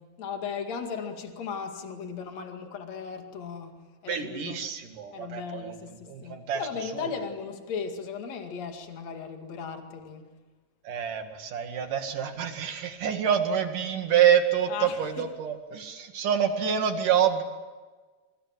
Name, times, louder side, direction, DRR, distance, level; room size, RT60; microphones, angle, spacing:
voice 1, 0.0-4.6 5.1-10.3 14.7-15.3, left 6 dB, 55° left, 5 dB, 3.4 m, -37 dB
voice 2, 4.1-5.8 6.1-6.6 7.0-7.1 10.9-17.4, right 9 dB, 70° right, 6 dB, 3.7 m, -27 dB
27.0 x 25.0 x 7.8 m, 1.3 s
omnidirectional pair, 3.9 m